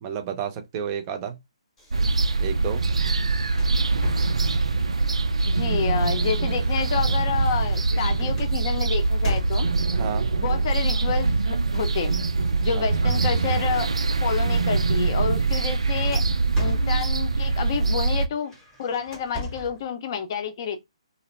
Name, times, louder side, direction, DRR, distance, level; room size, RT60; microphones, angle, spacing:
voice 1, 0.0-1.4 2.4-2.8 9.9-10.3 12.7-12.8, right 8 dB, 25° right, 0.5 m, -31 dB
sound 1, 1.8-4.9 5.8-10.0 11.0-11.4 11.7-14.0 14.5-14.7 15.1-17.4 18.4-19.9, equal, 10° left, 0.8 m, -39 dB
sound 2, 1.9-18.3, right 3 dB, 90° right, 0.3 m, -23 dB
voice 2, 5.4-9.7 10.4-12.2 12.6-13.9 14.2-16.2 16.6-18.5 18.8-20.8, left 7 dB, 40° left, 0.6 m, -29 dB
2.5 x 2.1 x 3.0 m
hypercardioid pair, 150°, 3 cm